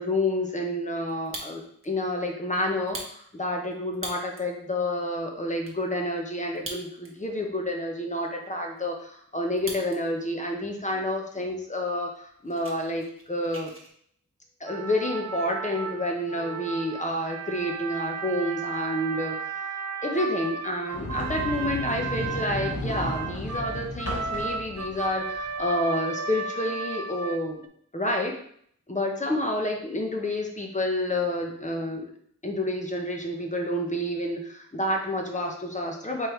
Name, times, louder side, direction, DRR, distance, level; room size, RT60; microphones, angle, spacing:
voice 1, 0.0-13.7 14.6-19.7 20.0-27.6 27.9-28.4 28.9-32.1 32.4-36.3, left 1 dB, 25° left, 1 dB, 0.9 m, -29 dB
Fire, 1.1-1.9 2.3-2.4 2.8-4.5 5.0-5.1 5.3-5.8 6.5-7.3 7.6-7.7 8.2-10.0 10.3-10.8 11.3-11.4 11.7-11.9 12.2-13.9, right 2 dB, 45° right, 1.2 m, -41 dB
sound 1, 14.7-27.7, right 4 dB, 65° right, 0.4 m, -34 dB
Sliding door, 20.9-25.8, left 1 dB, 55° left, 1.6 m, -34 dB
4.6 x 3.4 x 3.2 m, 0.63 s
wide cardioid pair, 60°, 29 cm